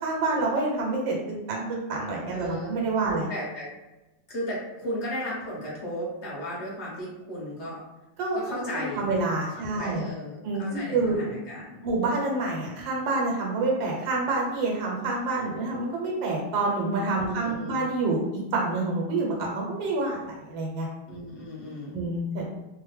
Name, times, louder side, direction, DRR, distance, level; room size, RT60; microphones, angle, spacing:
voice 1, 0.0-3.3 8.2-8.4 8.7-10.1 10.4-11.2 11.8-18.2 18.5-20.9 21.9-22.5, right 3 dB, 85° right, -2 dB, 1.5 m, -27 dB
voice 2, 2.3-2.8 3.0-3.7 4.3-7.8 8.3-9.1 9.6-11.8 17.2-17.8 21.1-22.0, equal, 45° left, -5 dB, 1.0 m, -35 dB
3.2 x 2.2 x 3.1 m, 1.0 s
omnidirectional pair, 2.0 m